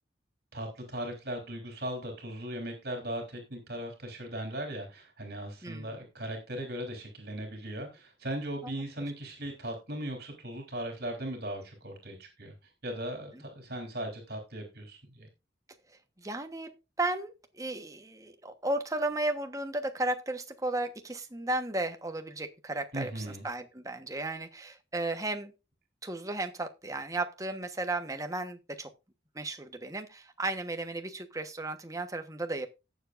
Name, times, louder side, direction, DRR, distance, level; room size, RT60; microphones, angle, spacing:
voice 1, 0.5-12.5 12.8-15.3 22.9-23.4, right 1 dB, 55° right, 4 dB, 3.5 m, -38 dB
voice 2, 16.2-25.5 26.0-28.9 29.3-32.7, right 2 dB, 20° right, 7 dB, 1.2 m, -34 dB
17.5 x 7.2 x 2.6 m, 0.27 s
head